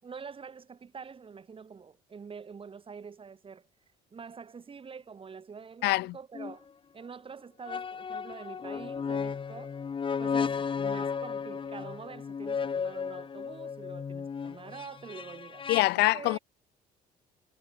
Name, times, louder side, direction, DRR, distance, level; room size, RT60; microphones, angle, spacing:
voice 1, 0.0-3.7 4.1-6.7 6.9-9.8 10.2-16.4, right 5 dB, 30° right, 4.6 m, -46 dB
voice 2, 5.8-6.1 15.7-16.4, left 20 dB, 85° left, 0.8 m, -24 dB
sound 1, 6.3-6.6 7.6-15.8, left 6 dB, 30° left, 1.2 m, -34 dB
cardioid pair, 110°, 17 cm